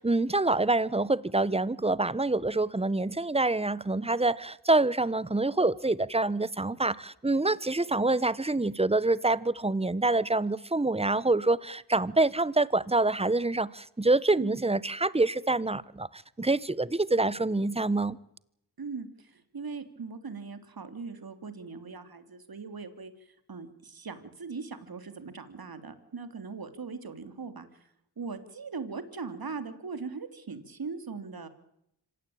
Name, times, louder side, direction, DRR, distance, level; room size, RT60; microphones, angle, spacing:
voice 1, 0.0-18.2, right 2 dB, 15° right, 1.2 m, -26 dB
voice 2, 18.8-27.9 28.2-31.5, right 4 dB, 50° right, 3.3 m, -40 dB
26.0 x 17.0 x 8.8 m
cardioid pair, 50°, 45 cm